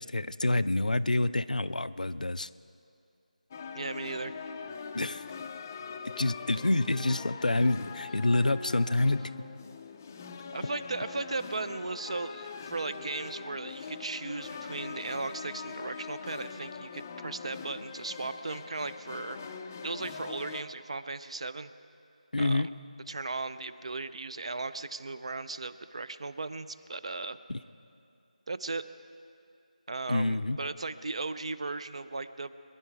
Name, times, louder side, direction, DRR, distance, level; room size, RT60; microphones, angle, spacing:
voice 1, 0.1-2.5 4.9-5.2 6.0-9.3 22.3-22.7 27.5-27.6 30.1-30.6, left 2 dB, 75° left, 14 dB, 0.5 m, -27 dB
sound 1, 3.5-20.6, left 5 dB, 20° left, 0.5 m, -42 dB
voice 2, 3.7-4.3 10.5-19.4 19.8-21.7 22.4-22.7 23.1-27.4 28.5-28.9 29.9-32.6, right 3 dB, 50° right, 13 dB, 0.6 m, -37 dB
23.5 x 11.0 x 4.6 m, 2.5 s
figure-of-eight pair, 165°, 4 cm